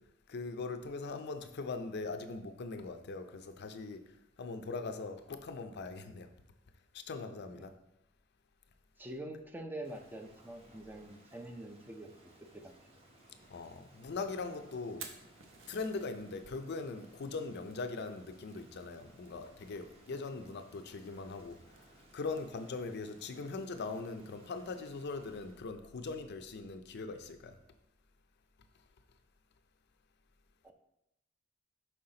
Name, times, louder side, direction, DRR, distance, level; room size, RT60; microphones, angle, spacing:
voice 1, 0.3-4.0 4.4-6.3 6.9-7.7 13.5-15.0 15.7-21.6 22.1-27.6, left 3 dB, 55° left, 8 dB, 0.5 m, -41 dB
voice 2, 9.0-12.8 30.6-30.7, right 1 dB, 10° right, 5 dB, 0.4 m, -45 dB
Rain, 9.8-25.7, right 1 dB, 30° right, 1.0 m, -62 dB
Fire, 14.9-26.2, right 6 dB, 70° right, 0.7 m, -58 dB
5.6 x 4.9 x 3.8 m, 0.86 s
head